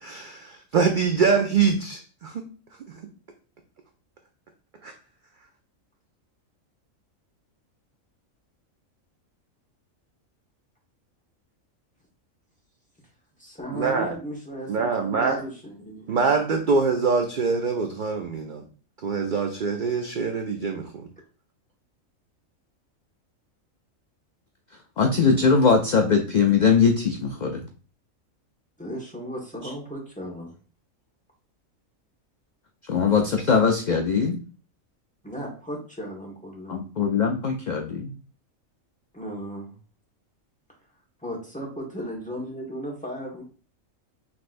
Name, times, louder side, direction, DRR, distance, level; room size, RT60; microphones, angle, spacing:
voice 1, 0.0-2.5 4.8-4.9 13.7-14.1 14.7-15.4 16.1-18.6 19.0-21.1, right 5 dB, 60° right, 4 dB, 0.5 m, -24 dB
voice 2, 13.4-16.1 28.8-30.5 35.2-36.8 39.1-39.7 41.2-43.4, equal, 5° left, -2 dB, 1.4 m, -36 dB
voice 3, 25.0-27.6 32.9-34.4 36.7-38.1, left 5 dB, 65° left, 3 dB, 0.4 m, -21 dB
5.8 x 3.2 x 2.5 m, 0.38 s
omnidirectional pair, 1.4 m